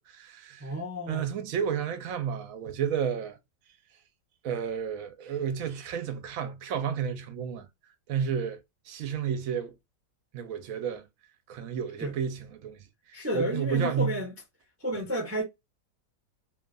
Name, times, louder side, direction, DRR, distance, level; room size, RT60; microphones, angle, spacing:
voice 1, 0.0-0.7 1.1-3.4 4.4-7.7 8.1-9.8 10.3-11.1 11.5-14.1, right 7 dB, 65° right, 0.9 m, -32 dB
voice 2, 0.6-1.3 12.0-12.1 13.1-14.3 14.8-15.4, equal, 25° right, 0.3 m, -31 dB
2.7 x 2.4 x 2.3 m
omnidirectional pair, 1.8 m